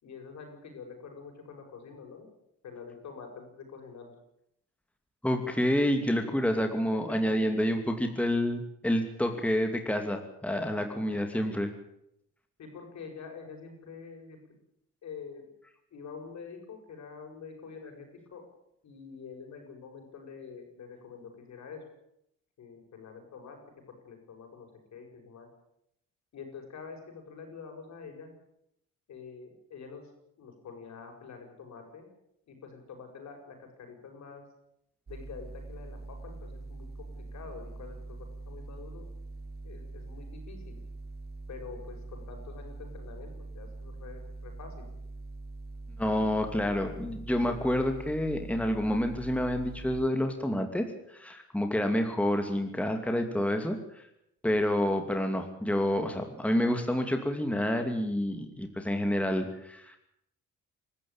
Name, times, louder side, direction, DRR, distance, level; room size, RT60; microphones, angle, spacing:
voice 1, 0.0-2.3 2.6-4.1 6.9-7.5 10.7-11.6 12.6-14.4 15.0-15.5 15.9-18.4 18.8-21.8 22.6-23.6 23.9-25.5 26.3-28.3 29.1-30.1 30.4-32.1 32.5-34.4 35.1-39.0 39.6-40.8 41.5-44.9, left 5 dB, 65° left, 3 dB, 7.4 m, -46 dB
voice 2, 5.2-11.7 46.0-54.0 54.4-60.0, left 1 dB, 5° left, 5 dB, 2.6 m, -28 dB
sound 1, 35.1-50.0, right 2 dB, 30° right, 2.3 m, -43 dB
24.0 x 14.0 x 8.8 m, 0.78 s
cardioid pair, 90°, 30 cm